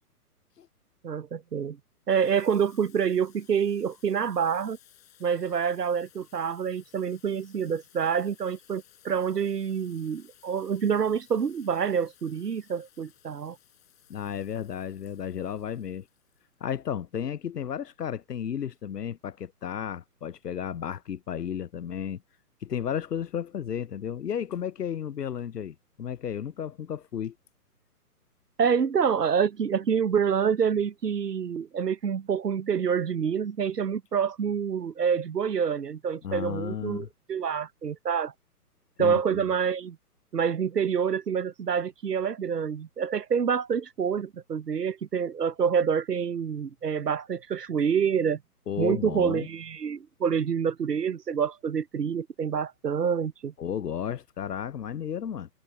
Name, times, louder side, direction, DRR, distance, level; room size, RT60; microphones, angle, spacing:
voice 1, 1.0-1.8 2.1-4.8 5.2-13.6 28.6-38.3 39.0-40.0 40.3-48.4 48.8-53.5, right 7 dB, 85° right, 0.7 m, -27 dB
Water tap faucet / Sink (filling or washing), 2.1-16.8, left 11 dB, 40° left, 4.6 m, -59 dB
voice 2, 14.1-16.1 16.6-22.2 22.6-27.3 36.2-37.1 39.0-39.4 48.7-49.5 53.6-55.5, left 8 dB, 90° left, 0.6 m, -33 dB
figure-of-eight pair, 130°, 46 cm